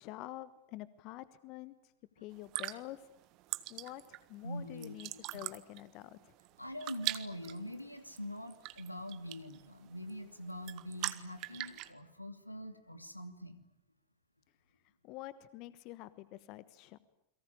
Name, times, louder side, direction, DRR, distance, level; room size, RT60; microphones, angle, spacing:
voice 1, 0.0-1.9 2.2-3.0 3.7-6.3 15.0-17.0, left 16 dB, 40° left, 16 dB, 1.2 m, -47 dB
sound 1, 2.3-11.9, right 18 dB, 40° right, 1.5 m, -43 dB
voice 2, 4.4-5.4 6.6-13.6, equal, 85° left, 10 dB, 2.5 m, -44 dB
29.5 x 23.0 x 8.6 m, 0.77 s
figure-of-eight pair, 90°, 0 cm